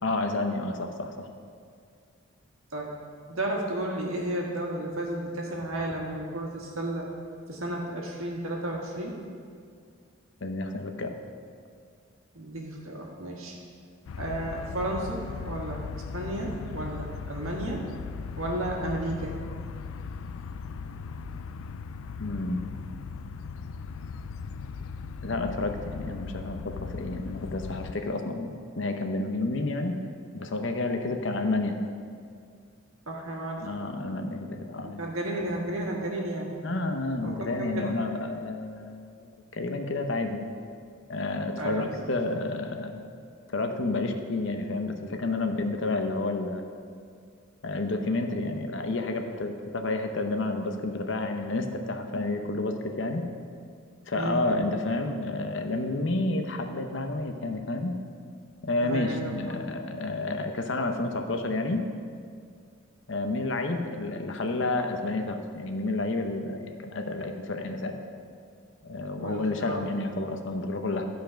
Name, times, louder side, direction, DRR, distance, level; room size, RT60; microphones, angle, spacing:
voice 1, 0.0-1.3 10.4-11.2 22.2-22.7 25.2-30.0 30.3-31.8 33.6-35.0 36.6-40.5 41.1-43.0 43.5-46.6 47.6-53.3 54.1-58.0 58.6-61.9 63.1-68.0 68.8-71.1, left 2 dB, 60° left, 5 dB, 0.7 m, -30 dB
voice 2, 3.3-7.1 7.5-9.2 12.3-13.6 14.2-17.8 18.4-19.4 33.1-33.7 34.8-36.5 37.2-37.9 41.6-42.1 54.1-54.4 58.8-59.6 69.2-69.8, right 1 dB, 80° right, -1 dB, 1.7 m, -33 dB
sound 1, 14.1-27.9, left 5 dB, 75° left, 0.3 m, -38 dB
12.5 x 5.1 x 5.1 m, 2.2 s
head